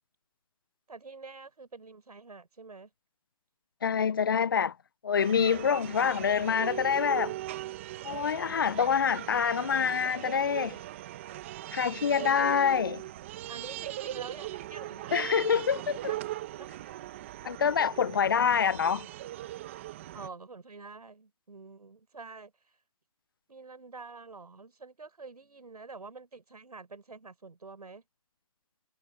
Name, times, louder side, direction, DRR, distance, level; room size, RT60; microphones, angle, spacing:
voice 1, 0.9-2.9 13.5-15.9 16.6-16.9 20.1-22.7 23.5-28.0, right 4 dB, 90° right, 5.6 m, -47 dB
voice 2, 3.8-4.7 5.0-7.3 8.0-10.8 11.7-13.0 15.1-15.8 17.4-19.1, left 7 dB, 35° left, 0.4 m, -26 dB
sound 1, 5.2-20.3, right 15 dB, 20° right, 1.0 m, -39 dB
hypercardioid pair, 165°, 19 cm